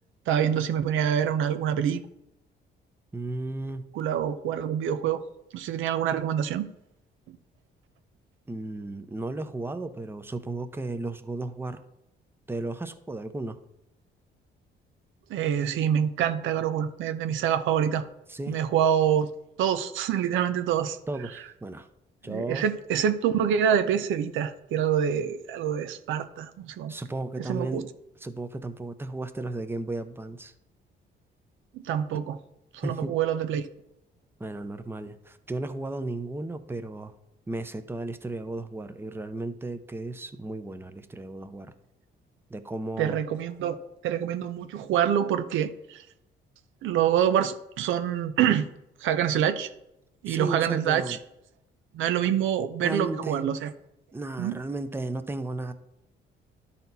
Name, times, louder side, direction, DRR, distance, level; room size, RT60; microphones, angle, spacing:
voice 1, 0.3-2.0 3.9-5.2 5.5-6.7 15.3-18.0 18.5-19.3 19.6-21.0 22.3-26.9 27.4-27.8 31.7-32.4 32.7-33.6 43.0-43.8 44.0-46.0 46.8-48.7 49.0-49.7 50.2-51.2 51.9-53.7 54.4-54.6, right 9 dB, 85° right, 10 dB, 0.6 m, -26 dB
voice 2, 3.1-3.9 8.5-11.8 12.5-13.6 18.3-18.7 21.1-21.9 22.2-22.7 26.9-27.9 28.2-30.5 32.8-33.2 34.4-37.1 37.5-41.7 42.5-43.2 50.3-51.2 52.8-53.4 54.1-55.7, right 2 dB, 10° right, 10 dB, 0.7 m, -34 dB
12.0 x 4.3 x 4.1 m, 0.83 s
cardioid pair, 90°, 20 cm